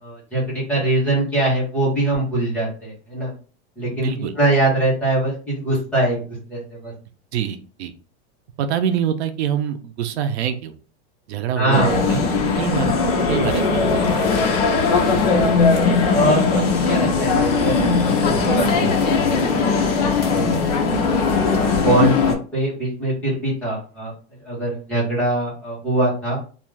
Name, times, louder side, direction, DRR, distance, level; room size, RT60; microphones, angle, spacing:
voice 1, 0.0-3.3 3.8-6.9 11.5-12.2 16.1-16.4 16.9-20.6 21.8-24.1 24.4-26.4, right 1 dB, 5° left, -8 dB, 0.7 m, -23 dB
voice 2, 7.3-7.9 8.6-10.7 11.3-12.2 12.6-13.0 13.3-14.3, right 9 dB, 85° right, 8 dB, 0.6 m, -25 dB
sound 1, 11.7-22.3, left 4 dB, 40° left, 0.5 m, -19 dB
2.4 x 2.3 x 3.1 m, 0.38 s
supercardioid pair, 180°, 32 cm